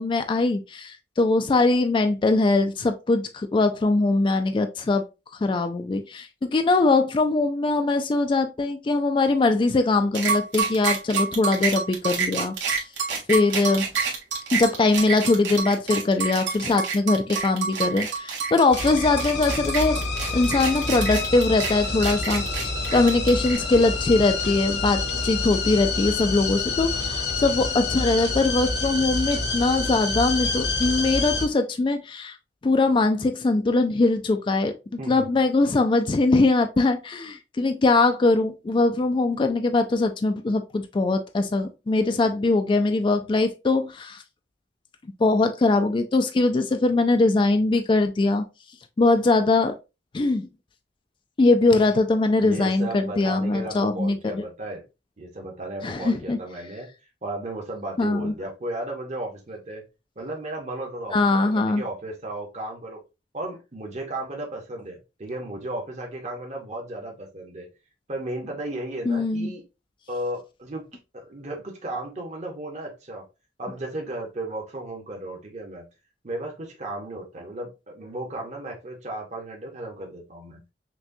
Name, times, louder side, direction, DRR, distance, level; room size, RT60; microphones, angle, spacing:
voice 1, 0.0-5.0 5.4-12.8 13.3-13.9 14.5-20.0 20.3-32.4 32.6-34.7 35.1-44.2 45.2-48.4 49.0-49.8 50.1-50.5 51.4-54.5 55.8-56.4 58.0-58.3 61.1-61.8 69.1-69.5, left 3 dB, 30° left, 0.3 m, -22 dB
sound 1, 10.1-23.6, right 6 dB, 80° right, 1.5 m, -28 dB
sound 2, 18.7-31.5, left 3 dB, 65° left, 1.0 m, -27 dB
voice 2, 52.4-54.8 55.2-56.9 57.2-59.9 60.2-63.0 63.3-67.7 68.1-69.6 70.1-70.9 71.1-73.2 73.6-75.9 76.2-80.6, right 1 dB, 40° right, 0.9 m, -34 dB
5.9 x 2.2 x 2.6 m
head